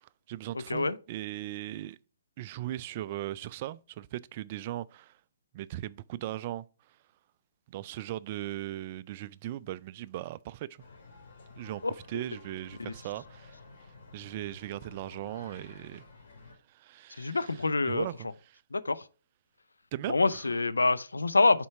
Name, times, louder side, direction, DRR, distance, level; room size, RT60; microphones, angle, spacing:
voice 1, 0.0-2.0 2.4-5.2 5.5-6.7 7.7-10.7 11.6-11.8 12.1-13.6 14.1-16.0 16.7-18.6 19.9-20.5, right 14 dB, 40° right, 0.3 m, -38 dB
sound 1, 10.8-16.6, left 3 dB, 60° left, 3.2 m, -52 dB
voice 2, 17.2-18.1 18.7-19.0 20.1-21.7, left 3 dB, 85° left, 0.5 m, -26 dB
5.6 x 4.4 x 5.5 m
figure-of-eight pair, 130°, 0 cm